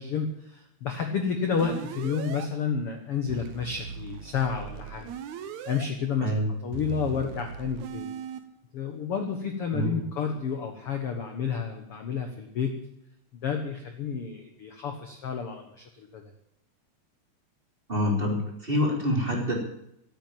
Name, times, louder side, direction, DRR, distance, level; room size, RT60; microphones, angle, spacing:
voice 1, 0.0-5.1 5.7-6.3 6.6-8.1 8.7-12.7 13.3-16.3, left 6 dB, 65° left, 5 dB, 1.4 m, -30 dB
sound 1, 1.6-2.5 3.3-5.9 6.7-8.4, right 8 dB, 65° right, 1.9 m, -39 dB
voice 2, 17.9-19.6, equal, 15° right, -2 dB, 3.1 m, -26 dB
14.0 x 9.1 x 9.1 m, 0.78 s
omnidirectional pair, 4.5 m